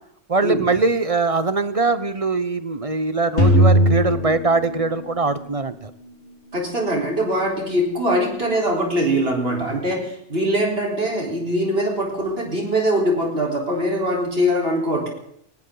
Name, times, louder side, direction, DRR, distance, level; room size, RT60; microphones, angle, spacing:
voice 1, 0.3-5.9, right 3 dB, 35° right, 13 dB, 0.8 m, -22 dB
sound 1, 3.4-5.5, equal, 80° left, 4.1 m, -18 dB
voice 2, 6.5-15.1, equal, 60° right, -1 dB, 4.5 m, -22 dB
19.5 x 18.5 x 3.9 m, 0.72 s
omnidirectional pair, 1.1 m